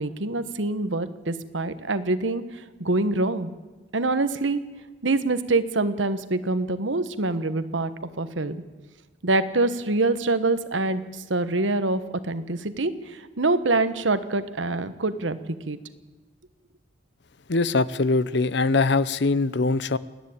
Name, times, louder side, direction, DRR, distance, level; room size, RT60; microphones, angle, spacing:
voice 1, 0.0-3.5 3.9-4.6 5.0-7.9 8.2-8.6 9.2-15.8, right 2 dB, 85° right, 12 dB, 1.3 m, -25 dB
voice 2, 17.5-20.0, left 3 dB, 65° left, 17 dB, 0.7 m, -22 dB
28.5 x 10.5 x 8.7 m, 1.3 s
head